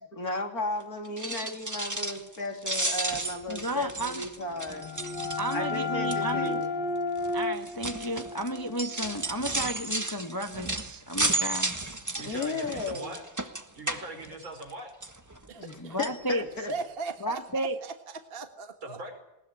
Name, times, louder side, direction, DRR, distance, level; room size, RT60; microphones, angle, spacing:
voice 1, 0.1-4.9 5.5-6.7 12.2-13.1 15.6-16.7, left 2 dB, 45° left, 4 dB, 3.3 m, -35 dB
sound 1, 1.0-2.4 2.6-5.8 6.1-6.5 7.2-14.7 15.0-15.7 16.0-16.2 16.7-16.8 17.1-17.2, right 2 dB, 10° right, 1.2 m, -33 dB
voice 2, 3.5-4.2 5.4-6.6 7.3-11.8 15.8-16.4 17.2-17.8, right 1 dB, 15° left, 6 dB, 1.0 m, -33 dB
sound 2, 4.5-10.0, left 3 dB, 70° left, 2.1 m, -33 dB
voice 3, 12.1-13.3 13.7-14.9 18.8-19.2, right 2 dB, 80° right, 4 dB, 5.9 m, -41 dB
voice 4, 15.5-16.0 16.7-19.0, right 4 dB, 30° right, 6 dB, 1.7 m, -38 dB
20.5 x 20.0 x 9.8 m, 0.92 s
omnidirectional pair, 2.1 m